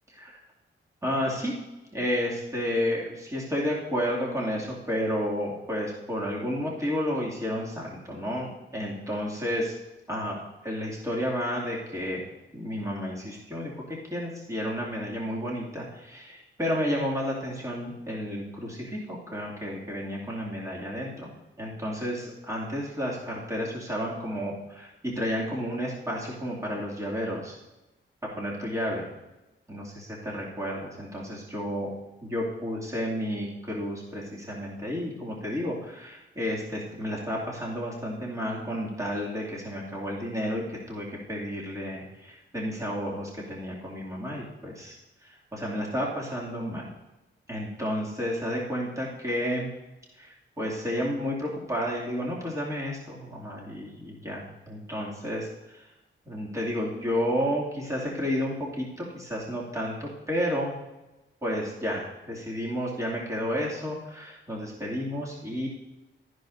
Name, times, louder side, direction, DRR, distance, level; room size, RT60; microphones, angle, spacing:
voice 1, 0.1-0.4 1.0-1.5 1.9-9.7 10.1-12.2 12.5-21.3 21.6-27.5 28.3-29.1 29.7-31.9 32.3-45.0 45.2-46.9 47.5-49.7 50.2-55.9 56.3-60.8 61.4-65.7, equal, 15° right, -5 dB, 2.4 m, -31 dB
13.0 x 10.5 x 2.7 m, 1.0 s
wide cardioid pair, 115°, 21 cm